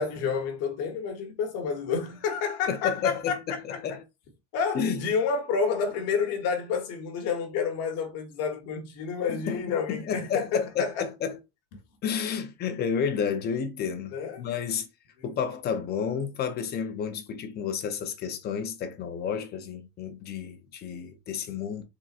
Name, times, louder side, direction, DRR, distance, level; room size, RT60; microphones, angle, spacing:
voice 1, 0.0-3.4 3.7-4.0 4.5-11.1 14.1-14.5 15.2-15.3, left 5 dB, 45° left, 1.2 m, -29 dB
voice 2, 2.7-4.0 4.7-5.0 9.3-9.6 9.9-11.3 12.0-14.9 15.2-21.8, left 7 dB, 30° left, 0.7 m, -31 dB
4.1 x 3.7 x 2.5 m
cardioid pair, 165°, 34 cm